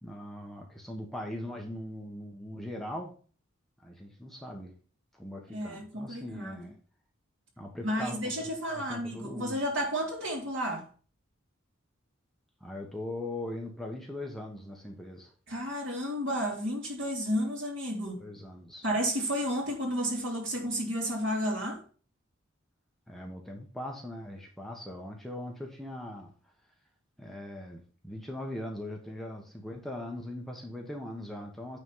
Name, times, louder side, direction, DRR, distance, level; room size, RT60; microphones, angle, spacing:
voice 1, 0.0-3.1 3.8-4.7 5.1-6.7 7.6-9.6 12.6-15.3 18.2-18.9 23.1-26.3 27.2-31.8, left 1 dB, ahead, 1.2 m, -40 dB
voice 2, 5.5-6.7 7.8-10.9 15.5-18.2 18.8-21.8, equal, 60° right, 3.1 m, -32 dB
9.4 x 4.1 x 5.6 m
head